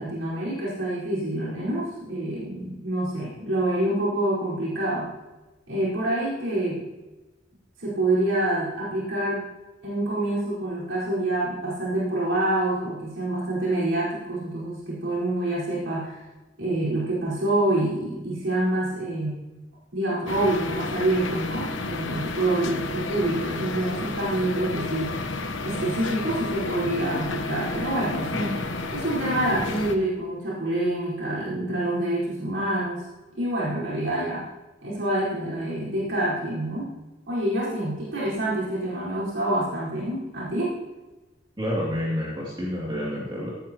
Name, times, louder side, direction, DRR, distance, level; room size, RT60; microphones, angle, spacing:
voice 1, 0.0-5.1 5.7-6.8 7.8-9.4 9.8-16.2 16.6-19.4 19.9-25.2 25.6-28.6 28.9-33.0 33.4-34.5 34.8-36.9 37.3-40.8, right 1 dB, 75° right, -8 dB, 4.7 m, -26 dB
sound 1, 20.3-30.0, left 3 dB, 85° left, 1.1 m, -31 dB
voice 2, 41.6-43.5, equal, 25° right, -6 dB, 2.7 m, -29 dB
17.0 x 12.0 x 3.0 m, 1.1 s
head